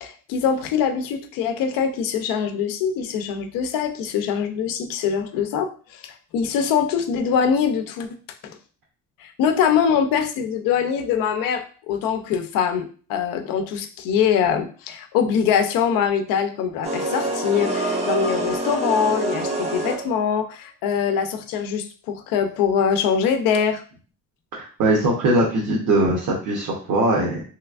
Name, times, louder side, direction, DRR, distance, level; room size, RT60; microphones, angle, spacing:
voice 1, 0.0-8.1 8.4-8.6 9.2-23.8, left 7 dB, 85° left, 7 dB, 0.6 m, -23 dB
sound 1, 16.8-20.3, right 2 dB, 20° right, 0.5 m, -26 dB
voice 2, 24.5-27.4, right 1 dB, 65° right, -2 dB, 0.9 m, -21 dB
3.3 x 3.0 x 2.4 m, 0.41 s
cardioid pair, 150°, 33 cm